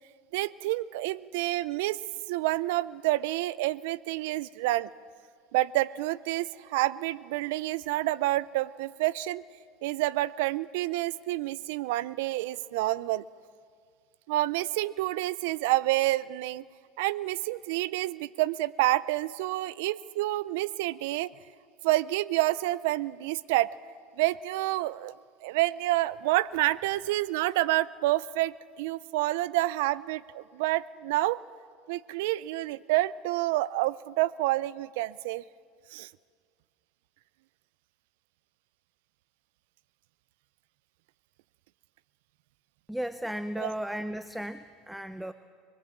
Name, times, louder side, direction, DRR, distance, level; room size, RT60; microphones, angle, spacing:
voice 1, 0.3-2.0 2.3-4.9 5.5-9.4 9.8-13.2 14.3-16.7 17.0-21.3 21.8-23.8 24.2-25.1 25.4-31.4 31.9-35.4 35.9-36.1 43.6-43.7, right 17 dB, 80° right, 20 dB, 0.5 m, -28 dB
voice 2, 42.9-45.3, right 1 dB, 5° right, 12 dB, 0.6 m, -35 dB
24.0 x 21.0 x 7.4 m, 2.1 s
supercardioid pair, 115°, 0 cm